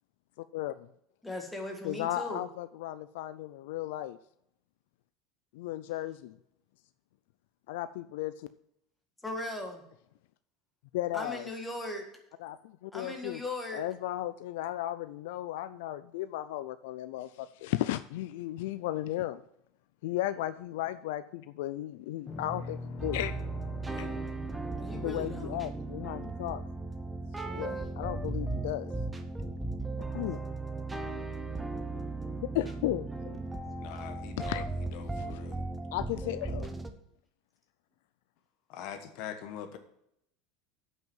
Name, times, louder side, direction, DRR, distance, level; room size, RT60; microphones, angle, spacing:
voice 1, 0.4-0.9 1.8-4.2 5.5-6.4 7.7-8.5 10.9-11.5 12.4-13.4 13.7-19.4 20.0-23.3 24.0-24.1 24.9-26.6 27.5-28.9 30.1-30.4 32.4-33.4 34.4-34.7 35.2-35.4 35.9-36.7, left 14 dB, 80° left, 14 dB, 0.4 m, -35 dB
voice 2, 1.2-2.4 9.2-9.8 11.1-12.0 12.9-13.8 23.9-24.1 24.8-25.6 27.4-28.0 29.6-29.9, left 2 dB, 5° left, 2 dB, 1.7 m, -39 dB
sound 1, 22.3-26.7, left 3 dB, 30° left, 1.4 m, -44 dB
sound 2, 23.0-36.9, right 3 dB, 10° right, 0.8 m, -37 dB
voice 3, 33.8-34.6 34.9-35.6 38.7-39.8, left 9 dB, 60° left, 8 dB, 1.2 m, -43 dB
8.0 x 6.0 x 7.1 m, 0.75 s
supercardioid pair, 145°, 0 cm